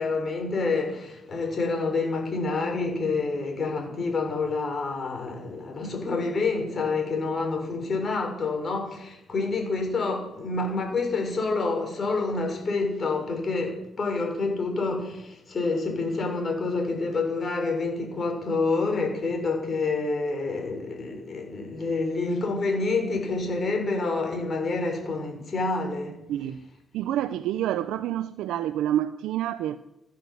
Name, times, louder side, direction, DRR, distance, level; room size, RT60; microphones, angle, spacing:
voice 1, 0.0-26.2, left 3 dB, 40° left, 6.4 m, -28 dB
voice 2, 26.3-26.6 26.9-29.8, right 12 dB, 90° right, 0.7 m, -28 dB
15.5 x 11.5 x 8.1 m
cardioid pair, 90°, 0 cm